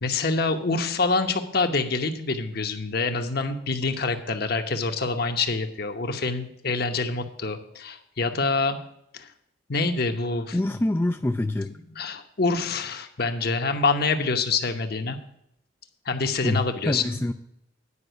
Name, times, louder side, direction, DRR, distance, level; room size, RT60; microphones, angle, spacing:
voice 1, 0.0-8.8 9.1-9.3 9.7-10.6 11.9-15.2 16.1-17.2, left 3 dB, 55° left, 6 dB, 1.0 m, -26 dB
voice 2, 10.5-11.7 16.4-17.3, left 1 dB, 10° left, 6 dB, 0.3 m, -25 dB
9.7 x 5.4 x 7.9 m, 0.75 s
head